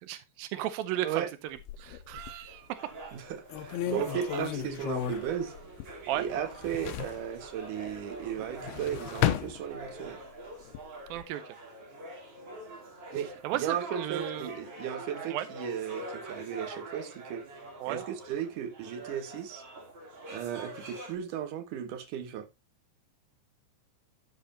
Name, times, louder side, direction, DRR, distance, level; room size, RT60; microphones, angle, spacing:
voice 1, 0.0-2.8 4.3-4.4 6.1-6.3 11.1-11.4 13.4-14.5 15.3-15.5 17.8-18.0, right 13 dB, 85° right, 2.0 m, -34 dB
sound 1, 1.6-2.5 3.0-3.1 3.5-6.2 6.4-7.3 8.4-10.2 10.6-11.2, left 12 dB, 75° left, 2.5 m, -34 dB
sound 2, 2.5-21.1, right 1 dB, 35° right, 3.7 m, -45 dB
voice 2, 3.1-5.5 6.1-10.2 13.1-17.4 17.9-19.6 20.3-22.5, right 9 dB, 60° right, 2.4 m, -35 dB
sound 3, 3.6-8.6, equal, 15° right, 5.4 m, -56 dB
12.5 x 8.0 x 2.8 m
omnidirectional pair, 5.2 m